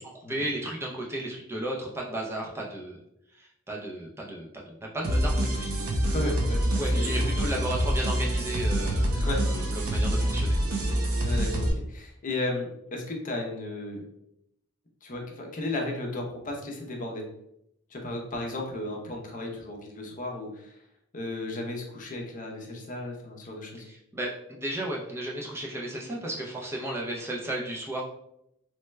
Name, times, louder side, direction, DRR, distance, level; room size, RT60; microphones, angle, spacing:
voice 1, 0.3-3.0 3.3-5.8 6.8-10.6 23.8-28.0, right 1 dB, 10° right, -3 dB, 0.4 m, -34 dB
sound 1, 5.0-11.7, equal, 85° right, 0.6 m, -26 dB
voice 2, 6.0-6.6 6.9-7.3 9.1-9.4 11.2-14.0 15.0-17.2 17.9-20.8 21.1-23.8, left 2 dB, 40° left, 0 dB, 0.6 m, -34 dB
3.2 x 2.2 x 3.1 m, 0.79 s
head